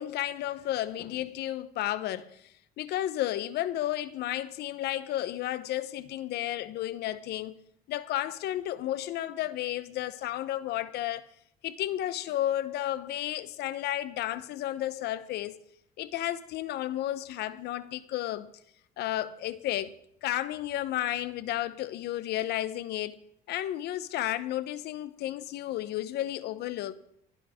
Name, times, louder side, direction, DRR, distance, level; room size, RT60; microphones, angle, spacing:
voice 1, 0.0-2.3 2.8-7.6 7.9-11.3 11.6-15.6 16.0-18.5 19.0-20.0 20.2-23.2 23.5-27.0, left 13 dB, 75° left, 1.0 m, -32 dB
28.0 x 10.5 x 3.7 m
cardioid pair, 110°, 17 cm